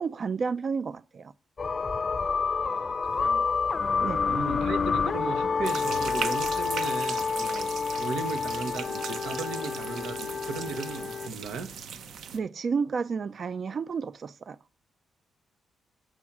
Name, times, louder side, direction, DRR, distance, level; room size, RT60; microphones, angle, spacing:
voice 1, 0.0-1.3 4.0-4.2 12.3-14.6, right 5 dB, 45° right, 0.4 m, -31 dB
sound 1, 1.6-11.3, left 5 dB, 35° left, 0.4 m, -29 dB
voice 2, 2.6-3.5 4.3-11.7, right 4 dB, 90° right, 1.1 m, -36 dB
sound 2, 3.0-11.2, right 2 dB, 25° right, 2.3 m, -59 dB
sound 3, 5.6-12.4, right 7 dB, 70° right, 1.1 m, -38 dB
8.5 x 6.2 x 5.9 m
cardioid pair, 115°, 0 cm